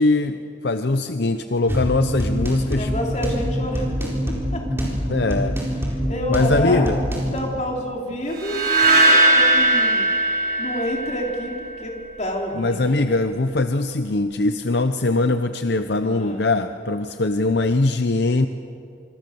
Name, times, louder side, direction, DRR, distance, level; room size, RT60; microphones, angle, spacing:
voice 1, 0.0-2.9 5.1-5.6 6.3-7.0 12.5-18.5, left 2 dB, 65° left, 9 dB, 0.8 m, -21 dB
sound 1, 1.7-7.4, equal, 15° right, 4.2 m, -25 dB
voice 2, 2.7-3.9 4.5-4.6 6.1-6.9 7.3-10.1 10.6-13.2 16.0-16.5, equal, 40° left, 0 dB, 4.2 m, -28 dB
sound 2, 8.4-11.6, right 2 dB, 50° right, 5.9 m, -18 dB
26.0 x 26.0 x 7.0 m, 2.6 s
head